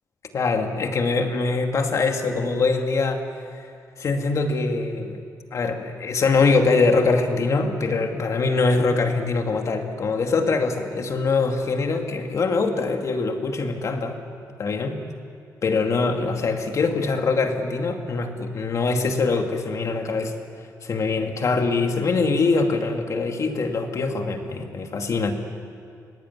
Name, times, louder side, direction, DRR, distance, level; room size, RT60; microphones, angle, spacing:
voice 1, 0.3-3.2 4.0-5.2 5.5-14.2 14.6-15.0 15.6-20.3 20.8-25.3, left 4 dB, 50° left, 4 dB, 2.4 m, -23 dB
25.0 x 18.5 x 9.9 m, 2.3 s
cardioid pair, 115°, 7 cm